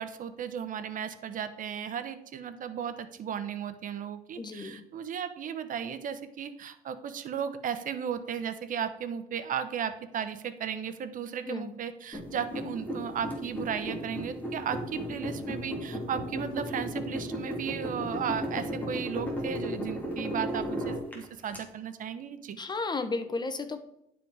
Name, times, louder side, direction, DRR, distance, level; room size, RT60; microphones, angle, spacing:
voice 1, 0.0-22.6, right 8 dB, 50° right, 10 dB, 0.9 m, -35 dB
voice 2, 4.4-4.8 11.5-11.7 22.6-23.8, left 3 dB, 25° left, 10 dB, 1.0 m, -33 dB
sound 1, 12.1-21.6, equal, 10° left, 2.8 m, -35 dB
11.5 x 5.1 x 4.9 m, 0.79 s
cardioid pair, 110°, 17 cm